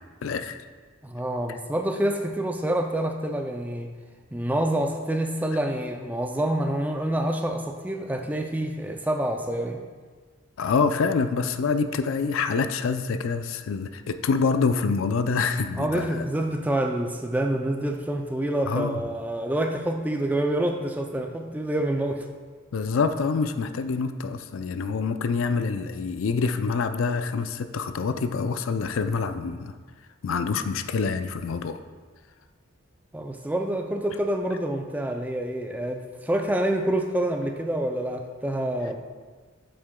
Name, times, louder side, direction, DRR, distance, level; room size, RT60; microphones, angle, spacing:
voice 1, 0.2-0.6 10.6-16.3 18.7-19.0 22.7-29.8 30.2-31.8, left 5 dB, 80° left, 10 dB, 0.4 m, -26 dB
voice 2, 1.0-3.9 4.3-9.8 15.8-22.3 33.1-39.0, right 1 dB, 10° right, 3 dB, 0.4 m, -27 dB
8.3 x 7.7 x 2.2 m, 1.5 s
head